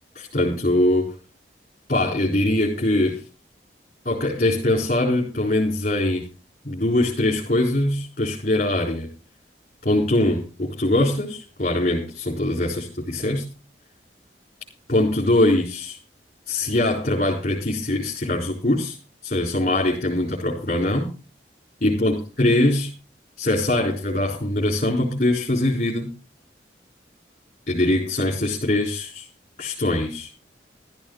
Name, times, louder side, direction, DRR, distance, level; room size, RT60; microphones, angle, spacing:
voice 1, 0.1-1.2 1.9-3.2 4.0-6.2 6.6-9.1 9.8-13.5 14.9-16.0 16.5-19.0 19.2-21.1 21.8-22.9 23.4-26.1 27.7-29.3 29.6-30.3, left 1 dB, 45° left, -3 dB, 4.1 m, -22 dB
14.5 x 13.5 x 3.9 m, 0.33 s
head